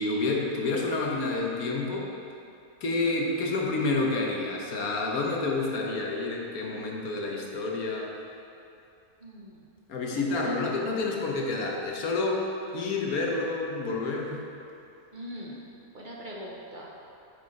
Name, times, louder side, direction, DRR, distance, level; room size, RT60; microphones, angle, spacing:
voice 1, 0.0-2.1 2.8-8.1 9.9-12.4 12.7-14.4, left 3 dB, 80° left, -1 dB, 1.5 m, -29 dB
voice 2, 9.2-9.6 10.1-10.5 15.1-15.6 15.9-16.9, equal, 40° right, -4 dB, 1.0 m, -41 dB
10.0 x 5.5 x 4.0 m, 2.6 s
omnidirectional pair, 1.5 m